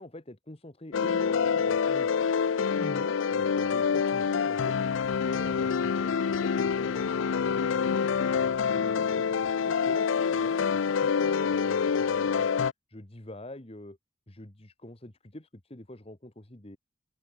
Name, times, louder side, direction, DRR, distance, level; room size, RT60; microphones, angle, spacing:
voice 1, 0.0-2.1 2.6-4.8 5.2-9.3 9.6-12.5 12.9-14.0 14.3-16.8, left 1 dB, 30° left, 1.6 m, -45 dB
sound 1, 0.9-12.7, left 6 dB, 90° left, 0.5 m, -26 dB
head